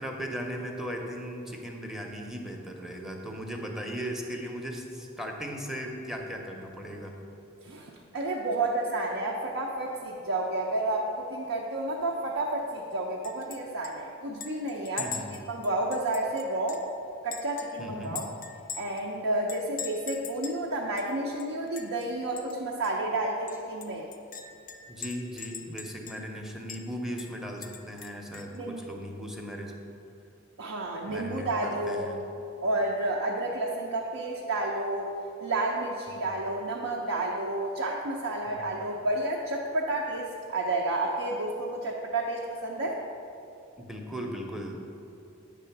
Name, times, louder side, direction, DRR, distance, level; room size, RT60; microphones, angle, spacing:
voice 1, 0.0-7.1 15.0-15.3 17.8-18.2 24.9-29.7 31.0-32.2 36.1-36.3 38.5-38.8 43.8-44.8, equal, ahead, 1 dB, 0.6 m, -37 dB
voice 2, 7.6-15.1 15.5-16.8 17.2-18.3 18.7-24.1 28.5-28.8 30.6-32.1 32.6-35.1 35.4-43.0, right 2 dB, 75° right, -2 dB, 0.6 m, -30 dB
Chink clink, 13.2-13.6 13.8-13.9 14.4-16.9 17.3-19.0 19.5-20.6 21.0-21.1 21.4-22.1 22.4-22.5 22.8-22.9 23.5-26.4 26.7-26.8 27.2-28.6, left 6 dB, 45° left, 0.4 m, -41 dB
8.4 x 3.6 x 5.8 m, 2.8 s
head